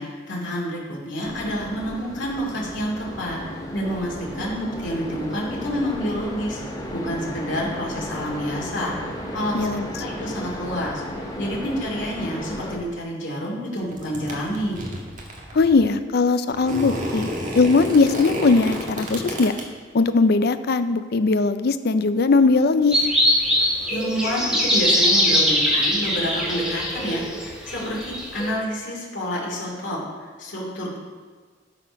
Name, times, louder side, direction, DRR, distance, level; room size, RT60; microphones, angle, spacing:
voice 1, 0.0-6.6 6.9-8.9 9.3-14.8 23.9-30.0 30.4-31.0, equal, 75° left, -3 dB, 2.5 m, -28 dB
sound 1, 1.2-12.8, equal, 20° left, 1.9 m, -34 dB
voice 2, 9.5-9.9 15.5-17.3 17.5-19.5 19.9-23.0, left 3 dB, 55° left, 12 dB, 0.5 m, -19 dB
sound 2, 13.8-15.9 16.5-19.6, equal, 45° right, 1.7 m, -31 dB
sound 3, 22.9-28.5, equal, 5° right, 1.4 m, -22 dB
12.5 x 4.4 x 5.2 m, 1.5 s
head